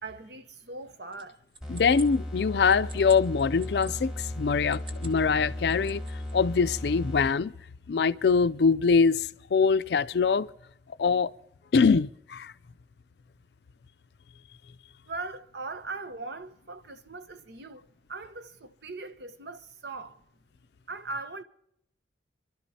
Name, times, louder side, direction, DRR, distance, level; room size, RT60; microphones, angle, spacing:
voice 1, 0.0-1.4 15.1-20.2 20.9-21.4, right 3 dB, 70° right, 1.0 m, -40 dB
sound 1, 1.1-3.9 4.6-5.2 5.5-6.3, right 3 dB, 30° right, 1.0 m, -48 dB
sound 2, 1.6-7.5, left 1 dB, 5° right, 2.4 m, -36 dB
voice 2, 1.7-6.0 6.3-7.5 7.9-10.5 11.0-11.3 11.7-12.5, left 5 dB, 65° left, 0.4 m, -23 dB
26.5 x 12.5 x 2.8 m
head